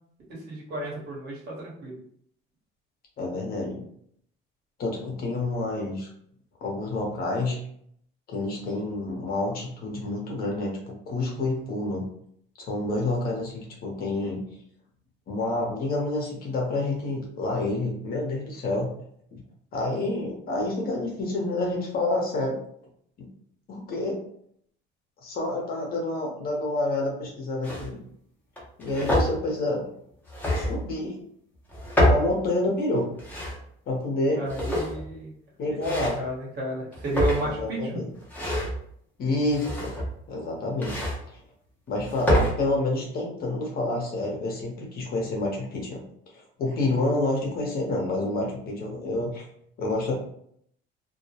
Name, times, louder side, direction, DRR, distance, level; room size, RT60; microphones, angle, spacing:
voice 1, 0.3-2.0 34.3-35.3 35.6-38.0, right 1 dB, 50° right, -5 dB, 1.2 m, -32 dB
voice 2, 3.2-3.8 4.8-6.1 6.6-7.6 8.3-12.1 12.7-14.5 15.3-18.9 19.3-19.4 19.7-22.6 23.2-23.3 23.7-24.2 25.2-28.0 28.8-29.9 30.5-31.2 32.0-33.1 33.9-34.4 35.6-36.2 37.4-38.1 39.2-40.0 40.3-41.0 41.3-41.4 41.9-46.0 46.3-49.5 49.8-50.1, left 2 dB, 45° left, -1 dB, 0.8 m, -28 dB
sound 1, 27.6-27.9 28.6-29.3 30.3-30.9 31.7-32.3 33.0-33.6 34.4-35.1 35.8-36.3 36.9-37.6 38.2-38.8 39.5-40.2 40.8-41.2 41.9-42.5, equal, 10° left, 0.8 m, -26 dB
2.3 x 2.1 x 2.8 m, 0.67 s
cardioid pair, 140°, 21 cm